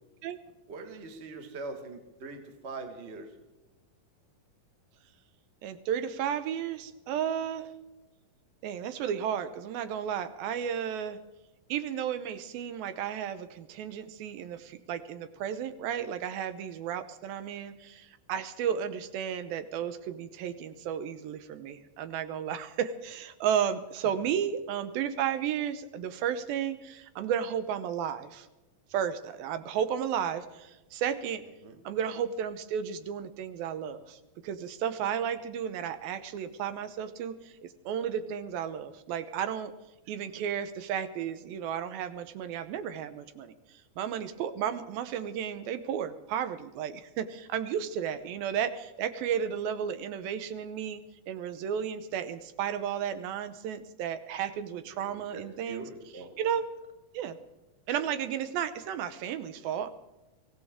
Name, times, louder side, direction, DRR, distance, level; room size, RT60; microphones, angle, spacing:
voice 1, 0.7-3.3 31.6-31.8 54.9-56.3, right 3 dB, 65° right, 5 dB, 0.6 m, -42 dB
voice 2, 5.6-7.7 8.6-11.2 11.7-28.5 28.9-31.4 31.8-37.6 37.9-39.7 40.1-51.0 51.3-55.9 56.1-56.6 57.1-57.4 57.9-59.9, right 8 dB, 90° right, 11 dB, 2.7 m, -33 dB
23.5 x 16.0 x 3.6 m, 1.1 s
omnidirectional pair, 4.1 m